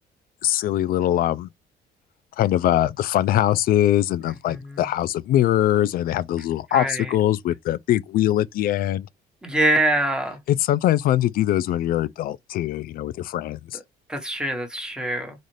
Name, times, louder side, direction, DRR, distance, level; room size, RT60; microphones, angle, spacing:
voice 1, 0.4-1.5 2.4-9.1 10.5-13.8, left 13 dB, 60° left, 0.4 m, -22 dB
voice 2, 4.5-4.8 6.7-7.1 9.4-10.4 14.1-15.3, right 1 dB, 5° right, 1.2 m, -24 dB
4.1 x 2.4 x 3.2 m
cardioid pair, 110°, 17 cm